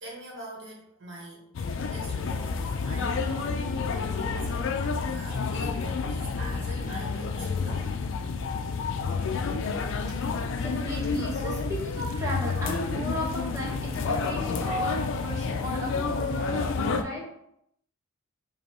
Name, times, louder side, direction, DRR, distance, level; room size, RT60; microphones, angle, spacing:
voice 1, 0.0-3.6 3.8-7.9, right 1 dB, 60° right, -2 dB, 1.2 m, -44 dB
sound 1, 1.5-17.0, left 4 dB, 60° left, 0.4 m, -29 dB
voice 2, 10.6-17.2, equal, 15° right, -6 dB, 1.1 m, -34 dB
5.0 x 2.3 x 3.0 m, 0.75 s
head